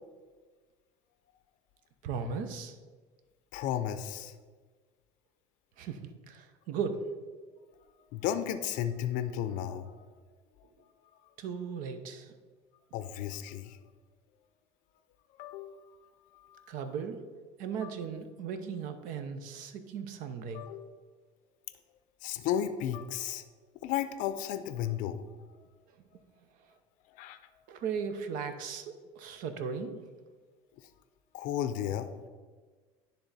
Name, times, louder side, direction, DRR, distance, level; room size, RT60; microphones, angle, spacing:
voice 1, 2.0-2.8 5.8-7.0 11.4-12.3 16.7-17.2 17.6-20.7 27.7-30.0, right 6 dB, 70° right, 9 dB, 0.7 m, -37 dB
voice 2, 3.5-4.3 8.1-9.8 12.9-13.8 15.4-15.8 16.5-16.6 17.8-17.9 20.5-20.9 22.2-23.4 23.8-25.2 27.1-27.4 31.3-32.3, left 10 dB, 65° left, 11 dB, 0.5 m, -33 dB
10.0 x 3.4 x 4.1 m, 1.4 s
supercardioid pair, 105°, 14 cm